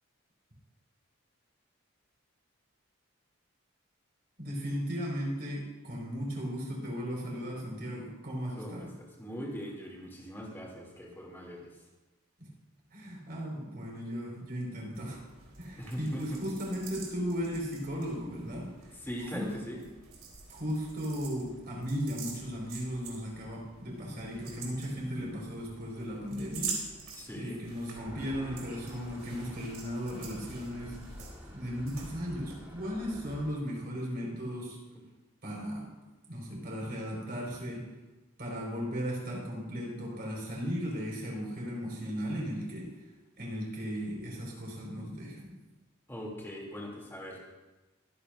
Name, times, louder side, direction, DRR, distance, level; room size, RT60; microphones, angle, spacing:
voice 1, 4.4-8.9 12.9-15.2 15.6-18.7 19.3-19.5 20.5-26.7 27.3-30.9 31.5-34.8 35.4-35.8 36.3-37.8 38.4-42.9 43.4-45.5, equal, 50° right, -3 dB, 5.1 m, -36 dB
voice 2, 8.6-11.7 15.8-16.4 18.9-19.8 27.1-27.6 46.1-47.4, equal, 10° left, -3 dB, 2.9 m, -41 dB
sound 1, 14.9-32.6, right 5 dB, 90° right, 3.6 m, -46 dB
sound 2, 28.0-33.5, equal, 10° right, 3.9 m, -48 dB
24.0 x 9.4 x 2.7 m, 1.1 s
head